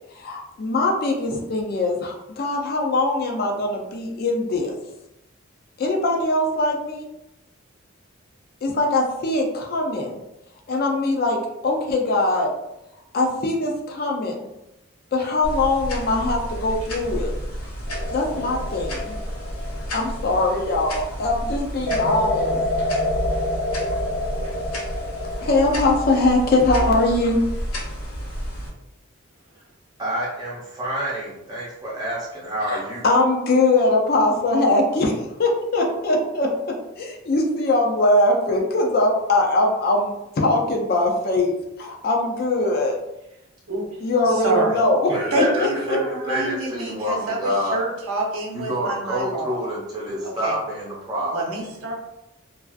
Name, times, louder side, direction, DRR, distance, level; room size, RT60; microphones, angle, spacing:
voice 1, 0.1-4.8 5.8-7.1 8.6-10.2 10.7-12.5 13.1-14.5 15.1-17.3 18.1-19.1 19.9-22.6 25.4-27.4 32.7-43.0 44.0-45.1 45.4-45.5 45.9-46.0, left 2 dB, 45° left, 0 dB, 0.4 m, -22 dB
sound 1, 15.4-28.7, equal, 85° left, 0.8 m, -31 dB
sound 2, 17.9-20.9 21.9-26.1, left 2 dB, 50° right, 0.7 m, -28 dB
voice 2, 30.0-33.0 45.1-47.8 48.5-51.3, equal, 20° right, -7 dB, 0.8 m, -27 dB
voice 3, 44.2-44.8 45.3-49.6 50.2-50.5 51.3-51.9, right 2 dB, 85° right, -1 dB, 0.7 m, -27 dB
2.5 x 2.3 x 2.3 m, 0.89 s
head